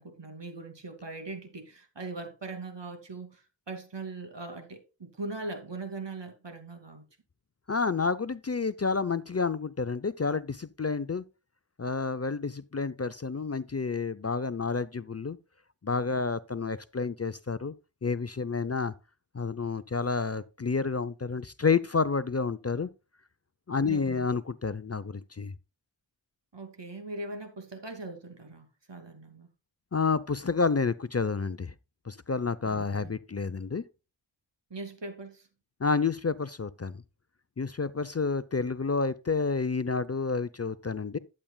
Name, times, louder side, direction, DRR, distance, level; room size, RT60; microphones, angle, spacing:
voice 1, 0.0-7.0 23.9-24.3 26.5-29.5 32.7-33.2 34.7-35.5, right 3 dB, 60° right, 2.7 m, -40 dB
voice 2, 7.7-11.2 11.8-15.4 15.8-17.7 18.0-18.9 19.3-22.9 23.7-25.5 29.9-31.7 32.1-33.8 35.8-37.0 37.6-41.2, left 4 dB, 30° left, 0.6 m, -29 dB
12.0 x 8.8 x 2.3 m
wide cardioid pair, 50°, 48 cm